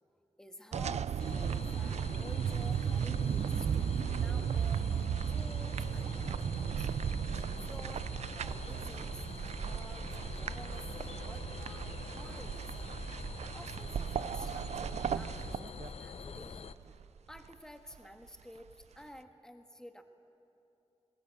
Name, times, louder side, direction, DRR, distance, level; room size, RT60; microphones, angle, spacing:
voice 1, 0.4-6.9 7.3-8.1 8.3-11.9 12.2-12.9 13.5-17.0 17.3-20.0, equal, 5° left, 5 dB, 1.5 m, -52 dB
sound 1, 0.7-15.9 16.4-16.5 16.8-17.5 17.9-18.0, right 8 dB, 90° right, 0.4 m, -35 dB
sound 2, 1.2-16.7, left 5 dB, 65° left, 0.7 m, -45 dB
22.5 x 19.5 x 8.1 m, 2.9 s
cardioid pair, 60°, 11 cm